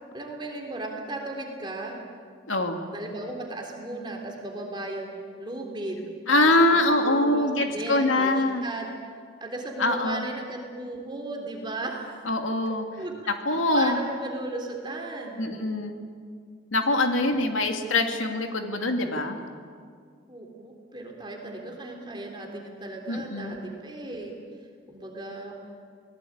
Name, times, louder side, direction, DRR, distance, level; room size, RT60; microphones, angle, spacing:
voice 1, 0.1-2.0 2.9-8.9 9.4-12.1 13.0-13.1 13.6-15.4 17.2-17.7 20.3-24.3 24.9-25.6, right 2 dB, 25° right, 1 dB, 3.5 m, -36 dB
voice 2, 2.5-2.8 6.3-8.6 9.8-10.3 12.3-12.9 13.5-14.0 15.4-16.0 16.7-19.4 23.1-23.6, left 2 dB, 90° left, 4 dB, 2.5 m, -23 dB
26.5 x 19.5 x 8.8 m, 2.1 s
head